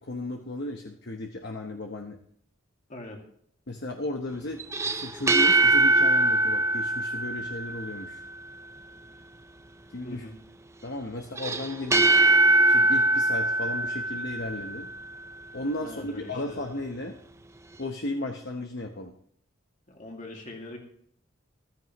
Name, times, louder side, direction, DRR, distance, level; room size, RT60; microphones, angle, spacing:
voice 1, 0.0-2.2 3.7-8.2 9.9-10.2 10.8-12.2 12.7-14.9 15.5-17.2 17.8-19.1, left 2 dB, 55° left, 3 dB, 1.0 m, -35 dB
voice 2, 2.9-3.2 10.0-10.4 15.8-16.7 19.9-20.8, left 1 dB, 35° left, 1 dB, 2.3 m, -42 dB
sound 1, 4.6-8.1 11.4-14.9, right 2 dB, 15° right, 0.6 m, -22 dB
14.5 x 14.0 x 3.1 m, 0.65 s
head